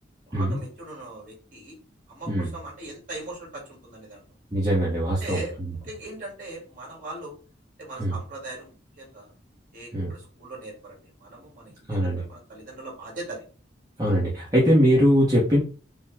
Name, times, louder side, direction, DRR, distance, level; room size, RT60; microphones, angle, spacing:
voice 1, 0.3-1.7 2.1-4.2 5.2-5.6 5.8-7.3 7.8-9.3 9.7-13.4, right 2 dB, 45° right, -2 dB, 2.2 m, -40 dB
voice 2, 4.5-5.4 8.0-8.1 9.9-10.1 11.9-12.2 14.0-15.6, equal, 20° right, -6 dB, 1.1 m, -21 dB
5.3 x 2.3 x 3.5 m, 0.36 s
head